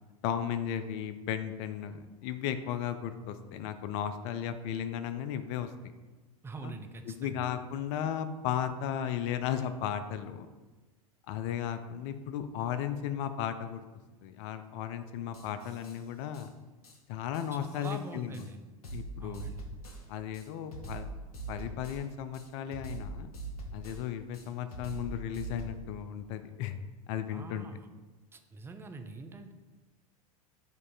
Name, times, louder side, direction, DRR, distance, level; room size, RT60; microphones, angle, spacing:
voice 1, 0.2-5.7 6.6-6.7 7.1-10.5 11.3-13.8 14.2-16.5 17.1-18.4 18.9-19.5 20.1-21.1 21.5-23.3 23.7-26.8 27.1-27.7, left 9 dB, 50° left, 10 dB, 0.4 m, -35 dB
voice 2, 6.4-7.4 17.5-18.6 19.2-19.6 27.3-27.9 28.3-29.5, right 3 dB, 15° right, 7 dB, 0.4 m, -44 dB
sound 1, 15.3-16.0 16.3-16.5 16.8-17.0 17.3-18.0 18.3-18.5 18.8-20.0 20.3-22.0 22.3-24.0 24.3-25.7, right 2 dB, 85° left, 0.7 m, -42 dB
5.2 x 2.6 x 3.9 m, 1.2 s
hypercardioid pair, 85°, 19 cm